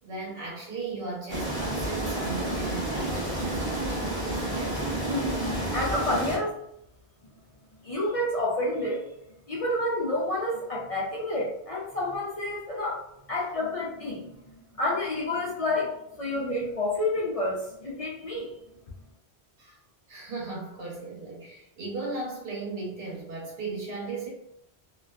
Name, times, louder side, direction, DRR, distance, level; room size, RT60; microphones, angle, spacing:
voice 1, 0.0-4.8 5.3-5.4 19.6-19.8 20.1-24.3, right 3 dB, 60° right, -3 dB, 1.0 m, -37 dB
sound 1, 1.3-6.4, right 1 dB, 25° right, 0.6 m, -30 dB
voice 2, 4.9-6.6 7.8-9.1 9.5-13.0 13.3-14.4 14.7-15.9 16.2-18.5, left 1 dB, 60° left, -5 dB, 0.4 m, -29 dB
2.5 x 2.2 x 2.3 m, 0.80 s
omnidirectional pair, 1.1 m